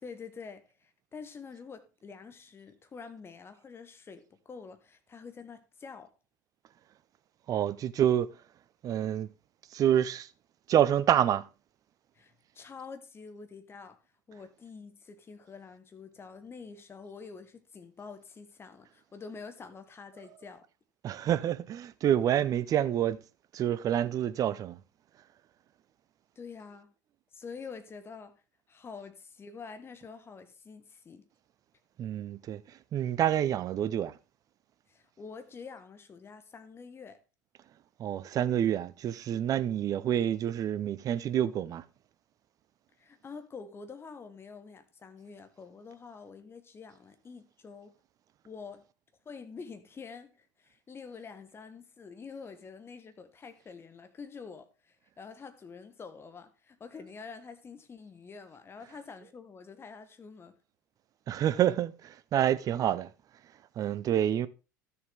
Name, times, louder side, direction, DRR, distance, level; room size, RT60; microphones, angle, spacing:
voice 1, 0.0-6.1 12.1-14.0 14.3-20.6 26.3-26.9 27.3-28.4 28.7-31.2 34.9-37.2 43.0-47.9 48.4-48.8 49.2-60.6, left 5 dB, 25° left, 1.3 m, -47 dB
voice 2, 7.5-8.3 8.8-9.3 9.7-10.3 10.7-11.4 21.0-23.2 23.5-24.8 32.0-32.6 32.9-34.1 38.0-41.8 61.3-63.1 63.8-64.5, right 10 dB, 35° right, 0.6 m, -27 dB
13.0 x 6.8 x 3.5 m
figure-of-eight pair, 70°, 10 cm